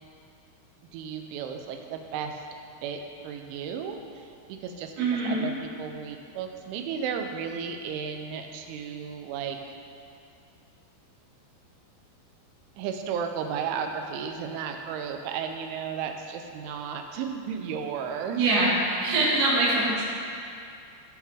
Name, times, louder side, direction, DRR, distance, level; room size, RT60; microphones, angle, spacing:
voice 1, 0.9-2.5 2.8-9.7 12.8-18.4 19.1-19.3, right 7 dB, 85° right, 4 dB, 3.1 m, -34 dB
voice 2, 5.0-5.5 18.3-20.0, right 2 dB, 45° right, -10 dB, 2.5 m, -23 dB
17.0 x 6.5 x 3.6 m, 2.5 s
omnidirectional pair, 5.5 m